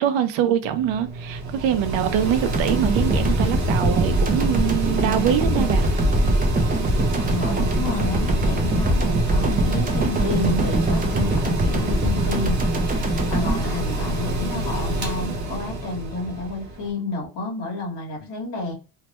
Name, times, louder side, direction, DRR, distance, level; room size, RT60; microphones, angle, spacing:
voice 1, 0.0-5.9, right 10 dB, 80° right, 0.6 m, -23 dB
Mechanical fan, 0.6-16.9, right 1 dB, 40° right, 0.8 m, -27 dB
sound 1, 2.5-14.7, right 1 dB, 20° right, 0.4 m, -23 dB
voice 2, 7.2-18.7, left 2 dB, 65° left, 1.6 m, -30 dB
3.2 x 2.1 x 2.8 m
cardioid pair, 155°, 45 cm